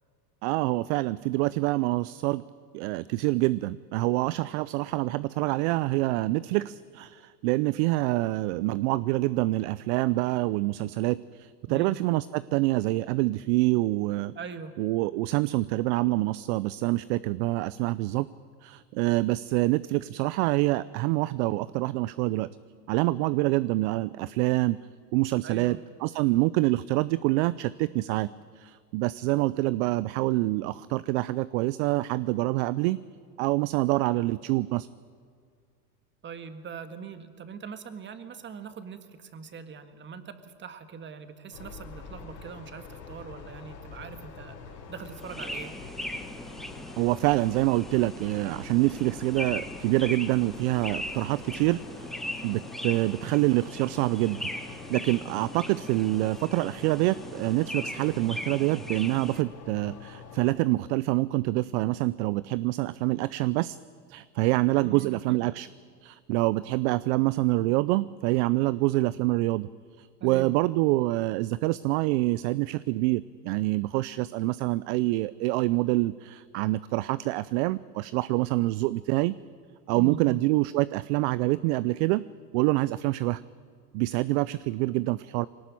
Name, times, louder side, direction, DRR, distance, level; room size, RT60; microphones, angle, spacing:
voice 1, 0.4-2.4 2.7-14.3 14.8-18.3 18.6-22.5 22.9-24.8 25.1-28.3 28.6-33.0 33.4-34.9 47.0-63.8 64.1-65.7 66.0-69.7 70.0-79.3 79.9-82.2 82.5-83.4 83.9-85.5, right 19 dB, 45° right, 18 dB, 0.5 m, -26 dB
voice 2, 14.3-14.7 25.4-25.8 36.2-45.7 64.8-65.5 70.2-70.5 79.9-80.4, right 6 dB, 25° right, 10 dB, 1.7 m, -42 dB
sound 1, 41.5-60.5, left 5 dB, 85° left, 4.5 m, -46 dB
sound 2, 45.1-59.4, equal, ahead, 1.2 m, -39 dB
22.0 x 18.5 x 8.5 m, 2.1 s
hypercardioid pair, 115°, 48 cm